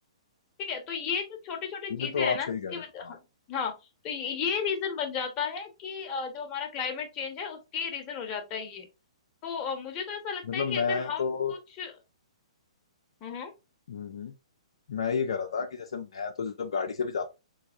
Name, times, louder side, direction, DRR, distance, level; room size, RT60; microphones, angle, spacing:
voice 1, 0.6-3.2 3.5-3.8 4.0-8.9 9.4-11.2 11.5-11.9 13.2-13.5, left 6 dB, 30° left, 1.2 m, -33 dB
voice 2, 1.9-2.7 3.0-3.1 10.4-11.5 13.9-14.3 14.9-17.3, left 5 dB, 65° left, 0.5 m, -31 dB
3.9 x 3.4 x 2.5 m
figure-of-eight pair, 120°, 3 cm